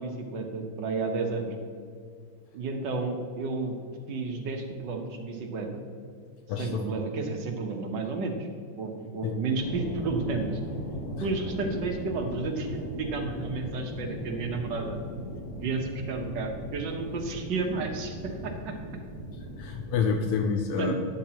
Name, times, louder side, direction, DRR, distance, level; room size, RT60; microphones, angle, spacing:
voice 1, 0.0-1.5 2.5-3.7 4.1-5.8 6.6-8.5 8.8-10.6 11.2-15.0 15.5-18.8 20.8-20.9, right 3 dB, 60° right, 3 dB, 1.6 m, -32 dB
voice 2, 6.5-6.9 9.2-9.4 11.2-11.3 19.6-20.9, left 6 dB, 80° left, 3 dB, 1.7 m, -28 dB
sound 1, 9.5-20.4, equal, 40° left, 2.9 m, -38 dB
11.5 x 10.5 x 2.9 m, 2.2 s
omnidirectional pair, 2.4 m